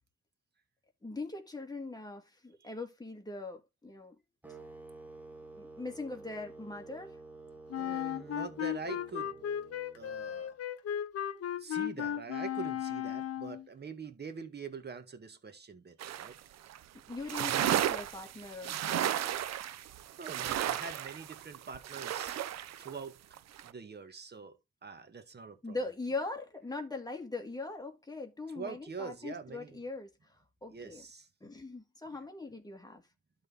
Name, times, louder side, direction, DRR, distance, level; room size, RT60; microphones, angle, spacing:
voice 1, 1.0-4.2 5.5-7.2 17.1-19.3 25.6-31.0 31.4-33.0, left 3 dB, 15° left, 2.3 m, -41 dB
sound 1, 4.4-10.5, right 3 dB, 5° right, 1.7 m, -51 dB
Wind instrument woodwind instrument, 7.7-13.7, left 10 dB, 50° left, 0.9 m, -36 dB
voice 2, 7.8-9.3 10.0-10.5 11.6-16.4 20.2-22.4 22.8-24.6 24.8-25.8 28.6-29.8 30.7-31.3, right 5 dB, 35° right, 1.8 m, -44 dB
sound 2, 16.0-16.4 16.7-16.8 17.1-22.9 23.3-23.7, right 11 dB, 60° right, 0.7 m, -33 dB
12.0 x 4.1 x 3.6 m
cardioid pair, 90°, 30 cm